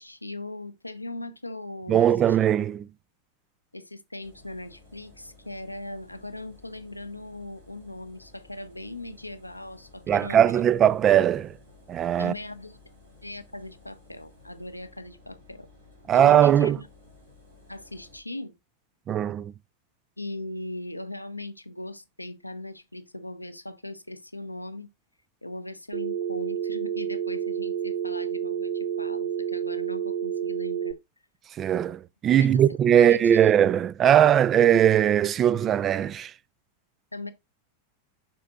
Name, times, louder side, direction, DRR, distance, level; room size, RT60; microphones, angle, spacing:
voice 1, 0.0-2.4 3.7-10.7 12.2-12.8 13.2-15.7 16.1-16.9 17.7-18.6 20.2-24.9 25.4-31.0 32.4-33.5 37.1-37.3, left 1 dB, 85° left, 0.6 m, -39 dB
voice 2, 1.9-2.9 10.1-11.5 11.9-12.3 16.1-16.8 19.1-19.5 31.5-36.3, right 10 dB, 30° right, 0.3 m, -20 dB
Engine, 4.2-18.2, left 3 dB, 75° right, 3.2 m, -55 dB
Telephone, 25.9-30.9, right 8 dB, 60° right, 0.7 m, -29 dB
11.5 x 4.3 x 2.4 m
figure-of-eight pair, 90°, 0 cm